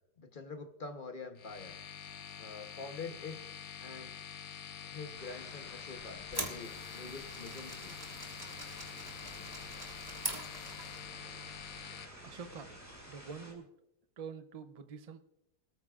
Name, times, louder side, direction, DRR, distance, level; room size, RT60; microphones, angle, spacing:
voice 1, 0.2-1.7 2.4-3.4 3.8-4.1 4.8-7.9, left 4 dB, 35° left, 7 dB, 0.9 m, -45 dB
sound 1, 1.4-12.0, left 8 dB, 75° left, 1.5 m, -46 dB
sound 2, 5.1-13.5, equal, 10° left, 5.0 m, -53 dB
sound 3, 6.0-11.1, right 2 dB, 15° right, 1.6 m, -44 dB
voice 2, 12.2-12.7 13.1-13.7 14.2-15.2, right 6 dB, 65° right, 9 dB, 0.3 m, -46 dB
25.0 x 13.5 x 2.4 m, 0.85 s
omnidirectional pair, 1.8 m